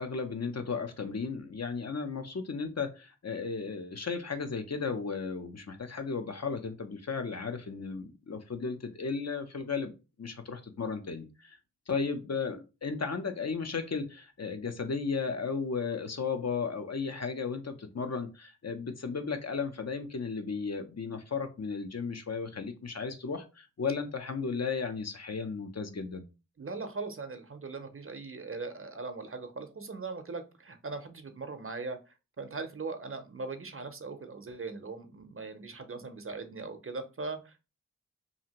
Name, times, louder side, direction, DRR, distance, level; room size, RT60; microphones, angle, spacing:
voice 1, 0.0-9.9 10.2-11.6 11.9-26.2, left 5 dB, 55° left, 6 dB, 0.5 m, -35 dB
voice 2, 26.6-37.7, right 3 dB, 45° right, 8 dB, 0.5 m, -40 dB
2.7 x 2.5 x 2.8 m, 0.29 s
wide cardioid pair, 45°, 32 cm